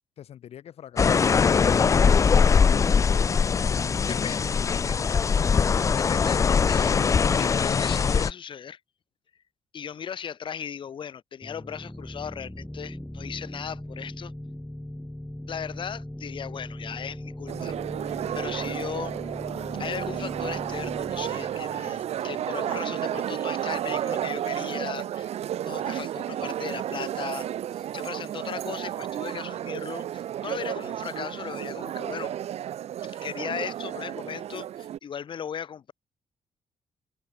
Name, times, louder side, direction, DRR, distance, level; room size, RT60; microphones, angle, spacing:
voice 1, 0.2-3.3, left 10 dB, 70° left, 4.1 m, -46 dB
sound 1, 1.0-8.3, left 6 dB, 30° left, 0.4 m, -21 dB
voice 2, 4.1-5.4 6.0-7.0 7.3-8.8 9.7-14.3 15.5-17.7 18.0-19.1 19.7-27.5 27.7-32.3 33.0-35.9, left 8 dB, 50° left, 1.5 m, -37 dB
sound 2, 11.4-23.0, left 1 dB, 5° left, 1.2 m, -39 dB
sound 3, 17.5-35.0, right 11 dB, 75° right, 3.3 m, -32 dB
cardioid pair, 125°, 11 cm